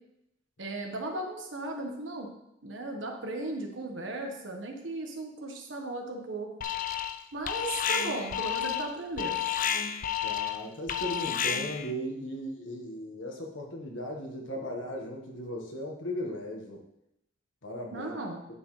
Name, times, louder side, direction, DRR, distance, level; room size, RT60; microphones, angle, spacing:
voice 1, 0.6-2.3 2.6-6.5 7.3-9.4 17.9-18.4, right 2 dB, 75° right, 2 dB, 1.4 m, -36 dB
Alarm, 6.6-7.2 7.5-11.9, left 9 dB, 45° left, 0.5 m, -31 dB
voice 2, 10.2-16.8 17.6-18.1, equal, 85° left, 0 dB, 1.6 m, -37 dB
9.6 x 6.5 x 3.3 m, 0.83 s
head